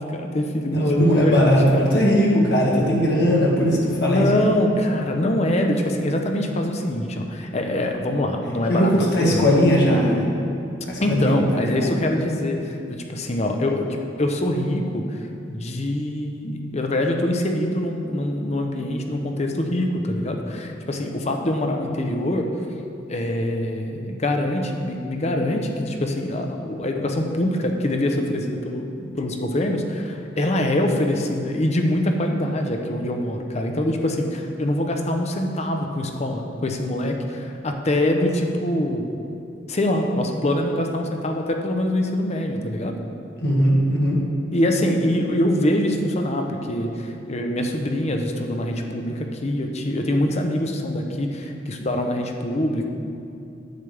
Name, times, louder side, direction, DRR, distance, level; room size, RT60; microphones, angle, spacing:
voice 1, 0.0-2.0 4.1-9.5 11.0-13.9 14.2-15.2 15.5-22.5 23.1-39.1 39.7-42.9 44.5-52.8, left 1 dB, 35° left, 3 dB, 0.7 m, -24 dB
voice 2, 0.7-4.2 8.7-10.3 10.9-12.0 43.4-44.2, equal, 65° left, -3 dB, 1.8 m, -19 dB
10.5 x 8.5 x 3.3 m, 2.7 s
head